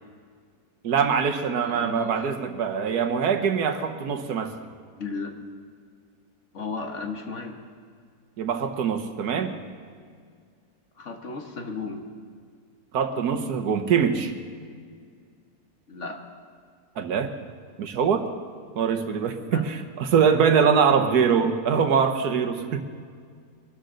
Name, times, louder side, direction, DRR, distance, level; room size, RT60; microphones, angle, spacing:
voice 1, 0.8-4.5 8.4-9.5 12.9-14.3 17.0-17.3 17.8-18.2 18.7-22.8, right 6 dB, 80° right, 7 dB, 1.5 m, -23 dB
voice 2, 1.6-2.2 5.0-5.3 6.5-7.6 11.0-12.0 15.9-16.2 19.4-19.7, left 4 dB, 50° left, 3 dB, 1.6 m, -34 dB
23.0 x 13.0 x 3.9 m, 2.1 s
omnidirectional pair, 1.7 m